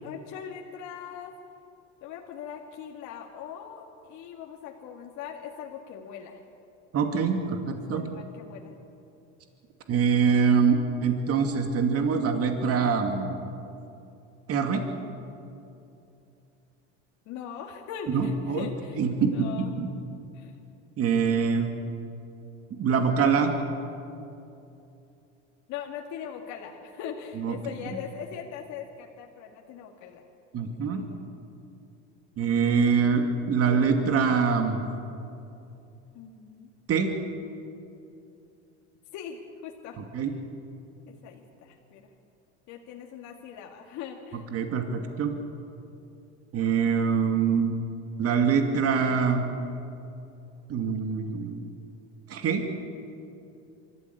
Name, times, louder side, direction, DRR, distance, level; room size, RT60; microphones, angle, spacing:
voice 1, 0.0-1.3 2.0-6.4 7.9-8.7 17.3-19.8 20.3-20.5 25.7-30.2 30.6-31.2 36.1-36.7 39.1-40.3 41.1-42.1 42.7-44.5, left 8 dB, 60° left, 1 dB, 2.1 m, -41 dB
voice 2, 6.9-8.0 9.9-13.4 14.5-14.8 18.1-18.7 19.0-19.9 21.0-21.7 22.8-23.5 27.3-27.5 30.5-31.0 32.4-34.8 36.9-37.1 40.1-40.3 44.5-45.3 46.5-47.7 48.2-49.5 50.7-51.6 52.3-52.6, right 6 dB, 45° right, 5 dB, 2.5 m, -24 dB
24.5 x 14.0 x 8.7 m, 2.7 s
hypercardioid pair, 85°, 33 cm